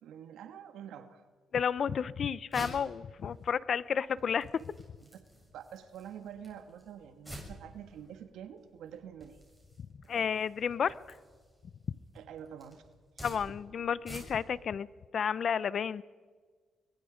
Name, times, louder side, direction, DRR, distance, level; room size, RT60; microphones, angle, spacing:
voice 1, 0.0-1.2 5.0-5.1 5.5-9.4 10.0-10.3 12.1-12.8 13.2-13.3 13.8-13.9, right 9 dB, 80° right, 8 dB, 1.5 m, -47 dB
voice 2, 1.5-4.7 10.1-11.0 13.2-14.9 15.1-16.0, left 7 dB, 55° left, 19 dB, 0.7 m, -31 dB
sound 1, 1.8-14.6, equal, ahead, 7.5 m, -51 dB
26.0 x 21.5 x 5.1 m, 1.5 s
cardioid pair, 90°, 0 cm